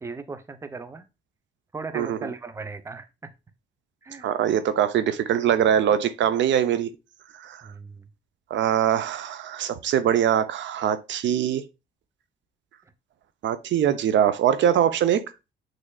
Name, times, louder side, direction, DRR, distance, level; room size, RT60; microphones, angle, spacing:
voice 1, 0.0-1.1 1.7-3.3 4.0-4.3 7.6-8.1, right 4 dB, 15° right, 0.5 m, -37 dB
voice 2, 1.9-2.3 4.2-6.9 7.3-7.7 8.5-11.6 13.4-15.2, right 9 dB, 65° right, 0.5 m, -22 dB
6.1 x 3.2 x 2.2 m
cardioid pair, 90°, 20 cm